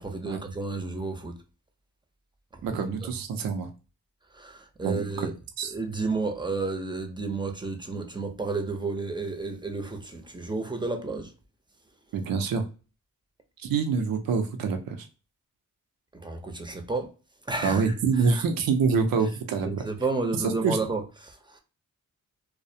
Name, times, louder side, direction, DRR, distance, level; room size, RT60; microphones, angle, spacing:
voice 1, 0.0-1.4 2.5-3.1 4.3-5.3 5.7-11.3 16.1-17.1 17.5-17.9 18.2-18.4 19.6-21.6, right 3 dB, 15° right, 0.6 m, -31 dB
voice 2, 2.6-3.7 4.8-5.3 5.6-5.7 12.1-12.6 13.6-15.1 17.6-19.9 20.4-20.8, right 5 dB, 80° right, 0.5 m, -26 dB
2.3 x 2.0 x 2.7 m
cardioid pair, 65°, 34 cm